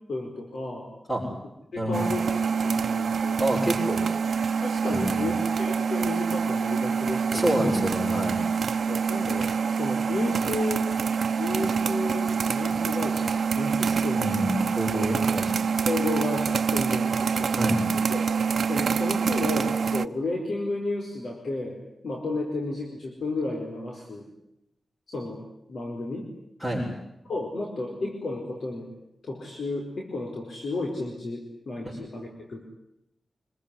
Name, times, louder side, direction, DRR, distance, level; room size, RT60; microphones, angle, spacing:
voice 1, 0.1-0.9 1.7-3.4 4.6-7.8 8.9-10.8 11.4-14.3 15.0-15.2 15.9-17.6 17.9-18.3 18.7-21.8 22.0-24.3 25.1-26.3 27.3-28.9 29.2-32.7, left 2 dB, 65° left, 1 dB, 4.7 m, -33 dB
sound 1, 1.9-20.1, right 6 dB, 70° right, 1.0 m, -26 dB
voice 2, 3.4-4.0 4.9-5.3 7.3-8.4 14.2-15.6 17.6-17.8 26.6-26.8 31.8-31.9, equal, 15° left, -4 dB, 7.2 m, -27 dB
26.5 x 21.5 x 9.8 m, 0.84 s
wide cardioid pair, 160°, 0 cm